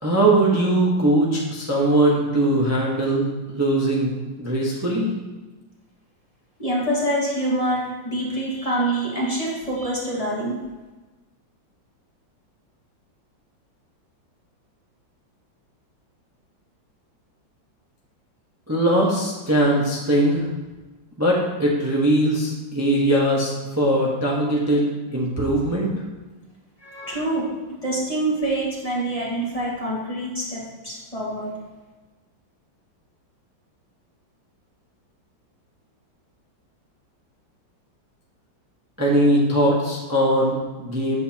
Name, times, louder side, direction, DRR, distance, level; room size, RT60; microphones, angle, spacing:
voice 1, 0.0-3.3 3.5-5.1 18.7-20.4 21.2-25.9 39.0-41.2, right 1 dB, 10° right, -4 dB, 0.8 m, -20 dB
voice 2, 6.6-10.6 26.8-31.5, right 1 dB, 20° left, -5 dB, 1.7 m, -26 dB
8.3 x 7.7 x 2.9 m, 1.2 s
omnidirectional pair, 2.1 m